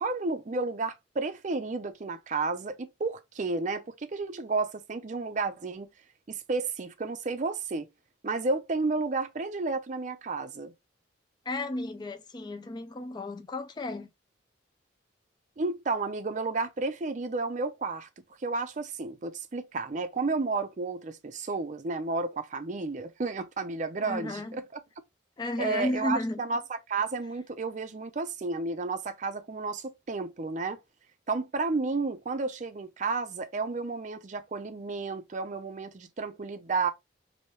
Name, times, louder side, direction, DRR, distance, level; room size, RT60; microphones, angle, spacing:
voice 1, 0.0-5.9 6.3-7.9 8.2-10.7 15.6-18.1 18.4-24.8 25.6-26.6 26.9-30.8 31.3-36.9, right 3 dB, 40° right, 0.5 m, -32 dB
voice 2, 11.5-14.1 24.0-24.6 25.4-26.4, left 2 dB, 20° left, 0.3 m, -33 dB
2.9 x 2.7 x 3.0 m
head